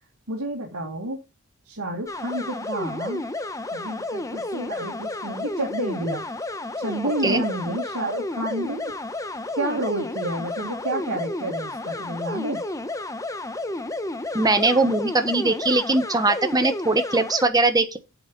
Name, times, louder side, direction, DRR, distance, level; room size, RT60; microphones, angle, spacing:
voice 1, 0.3-1.2 1.7-3.3 3.7-6.3 6.8-8.9 9.6-12.6, right 1 dB, 80° right, 2.3 m, -30 dB
sound 1, 2.1-17.4, left 2 dB, 15° left, 0.9 m, -31 dB
voice 2, 14.3-18.0, right 2 dB, 20° right, 1.3 m, -21 dB
8.1 x 7.8 x 5.5 m
head